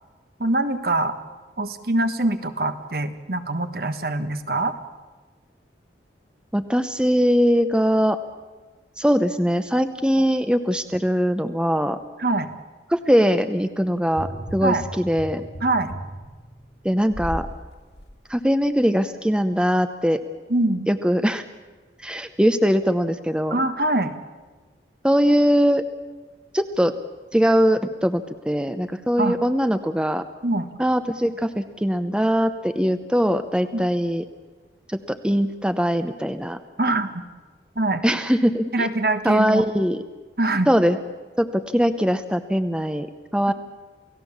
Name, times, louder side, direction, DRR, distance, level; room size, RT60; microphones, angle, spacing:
voice 1, 0.4-1.2 1.6-4.7 12.2-12.5 14.6-14.8 15.6-15.9 20.5-20.9 23.5-24.1 29.2-29.4 30.4-30.7 33.7-33.8 36.8-37.1 37.7-38.0 38.7-39.6 40.4-40.7, right 2 dB, 55° right, 9 dB, 1.4 m, -23 dB
voice 2, 6.5-8.2 9.0-12.0 12.9-15.4 16.8-17.5 18.3-20.2 20.9-21.4 22.0-23.6 25.0-25.8 26.5-26.9 27.3-30.2 30.8-34.2 34.9-36.6 38.0-38.9 39.2-40.0 40.7-41.0 41.4-43.1 43.3-43.5, equal, 5° right, 10 dB, 0.7 m, -21 dB
sound 1, 14.1-17.5 18.0-18.1, equal, 75° left, 2.7 m, -35 dB
29.0 x 17.0 x 7.2 m, 1.3 s
head